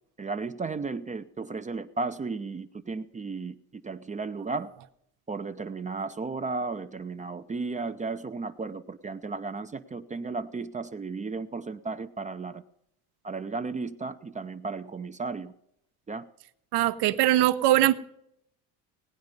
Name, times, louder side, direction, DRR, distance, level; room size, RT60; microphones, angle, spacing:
voice 1, 0.2-4.7 5.3-12.6 13.2-15.5 16.1-16.3, right 4 dB, 15° right, 9 dB, 0.5 m, -34 dB
voice 2, 16.7-17.9, right 14 dB, 65° right, 12 dB, 0.9 m, -21 dB
18.0 x 9.4 x 5.3 m, 0.76 s
supercardioid pair, 95°, 43 cm